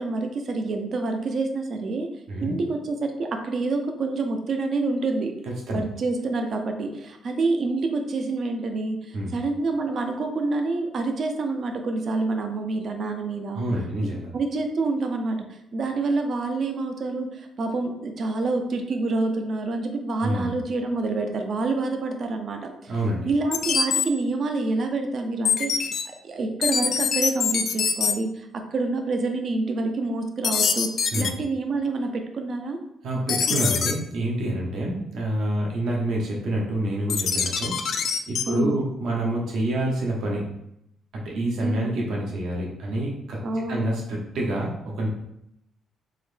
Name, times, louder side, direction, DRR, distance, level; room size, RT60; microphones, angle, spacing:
voice 1, 0.0-2.1 2.4-5.3 5.7-13.6 14.0-22.9 23.2-25.9 26.2-30.9 31.1-32.8 38.5-38.8 41.6-41.9 43.4-43.9, right 3 dB, 55° right, 5 dB, 0.5 m, -27 dB
voice 2, 13.5-14.3 20.2-20.5 22.9-23.3 31.1-31.3 33.0-37.8 38.3-40.6 41.1-45.1, right 1 dB, 75° right, -2 dB, 0.9 m, -27 dB
sound 1, 23.5-24.1 25.5-26.0 26.6-28.1 30.4-31.3 33.3-33.9 37.1-38.4, left 6 dB, 60° left, 0.3 m, -23 dB
3.7 x 2.1 x 3.3 m, 0.78 s
cardioid pair, 90°, 0 cm